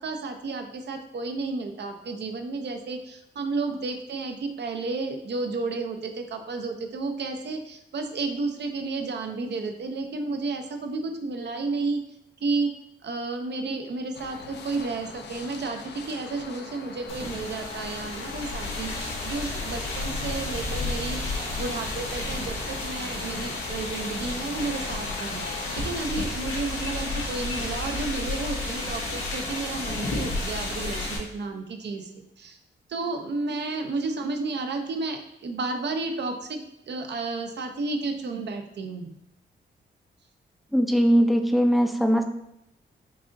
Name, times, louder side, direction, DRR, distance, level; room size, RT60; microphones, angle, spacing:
voice 1, 0.0-12.0 12.4-12.7 13.0-21.2 21.6-32.6 32.9-36.6 36.9-39.2, right 3 dB, 60° right, 6 dB, 0.6 m, -32 dB
sound 1, 14.1-26.0, left 5 dB, 60° left, 0.5 m, -42 dB
sound 2, 17.1-31.2, left 2 dB, 90° left, 0.9 m, -32 dB
voice 2, 40.7-42.2, equal, ahead, 5 dB, 0.5 m, -20 dB
4.7 x 2.8 x 2.5 m, 0.81 s
supercardioid pair, 50°, 20 cm